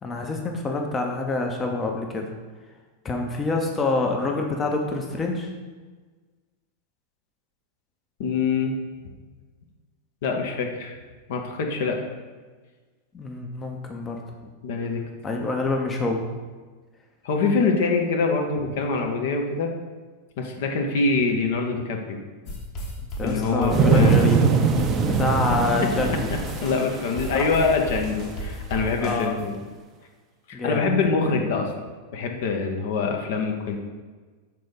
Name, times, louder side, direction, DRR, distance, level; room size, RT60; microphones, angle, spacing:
voice 1, 0.0-2.2 3.0-5.5 13.1-14.2 15.2-16.3 23.2-24.6 25.1-26.3 27.4-27.5 29.0-29.4 30.5-30.8, left 3 dB, 20° left, 2 dB, 0.7 m, -26 dB
voice 2, 8.2-8.7 10.2-11.0 11.3-12.0 14.6-15.0 15.3-15.5 17.2-19.7 20.4-22.2 23.2-24.2 26.6-29.6 30.5-31.7 32.1-33.8, left 4 dB, 55° left, 2 dB, 0.8 m, -24 dB
sound 1, 22.5-29.6, equal, 35° left, 1.4 m, -34 dB
sound 2, 23.7-27.7 28.2-28.3, right 5 dB, 25° right, 0.5 m, -22 dB
6.5 x 4.1 x 4.0 m, 1.4 s
figure-of-eight pair, 90°, 0 cm